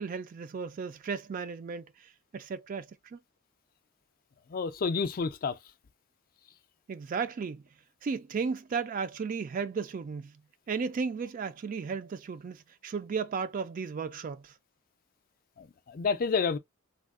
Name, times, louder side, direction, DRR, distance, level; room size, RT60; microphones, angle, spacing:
voice 1, 0.0-3.2 6.9-7.6 8.0-10.3 10.7-14.5, right 5 dB, 40° right, 0.3 m, -35 dB
voice 2, 4.5-5.6 15.6-16.6, left 5 dB, 40° left, 0.4 m, -29 dB
3.4 x 2.3 x 2.3 m
head